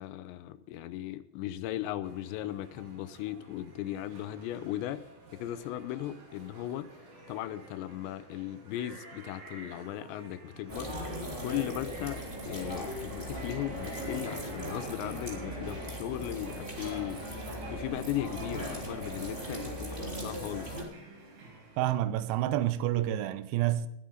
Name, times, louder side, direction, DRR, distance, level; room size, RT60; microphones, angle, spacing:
voice 1, 0.0-5.0 5.3-11.1 11.4-20.8, left 13 dB, 80° left, 2.9 m, -37 dB
sound 1, 2.0-22.0, right 3 dB, 70° right, 6.1 m, -52 dB
sound 2, 10.7-20.8, equal, 15° right, 2.9 m, -38 dB
voice 2, 21.8-23.9, right 13 dB, 85° right, 2.1 m, -28 dB
20.5 x 9.6 x 3.9 m
omnidirectional pair, 5.2 m